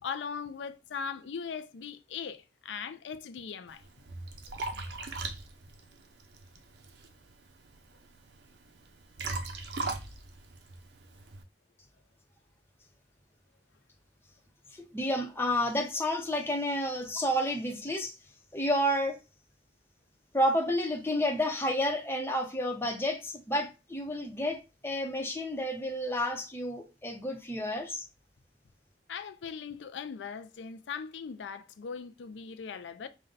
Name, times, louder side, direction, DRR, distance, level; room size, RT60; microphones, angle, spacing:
voice 1, 0.0-3.8 29.1-33.1, left 6 dB, 85° left, 0.4 m, -39 dB
Liquid, 3.7-11.4, right 3 dB, 75° right, 0.7 m, -40 dB
voice 2, 14.7-18.1 18.5-19.2 20.3-28.0, equal, 15° left, 0.8 m, -30 dB
5.3 x 2.2 x 3.9 m
head